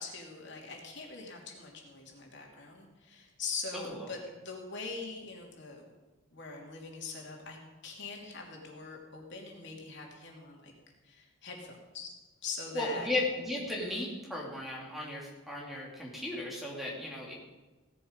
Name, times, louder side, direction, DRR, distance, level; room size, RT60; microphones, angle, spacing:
voice 1, 0.0-5.9 6.3-7.6 7.8-10.7 11.0-12.1 12.4-13.1, left 4 dB, 55° left, 0 dB, 2.8 m, -42 dB
voice 2, 12.7-17.3, left 2 dB, ahead, -3 dB, 2.7 m, -35 dB
17.0 x 12.0 x 5.3 m, 1.2 s
head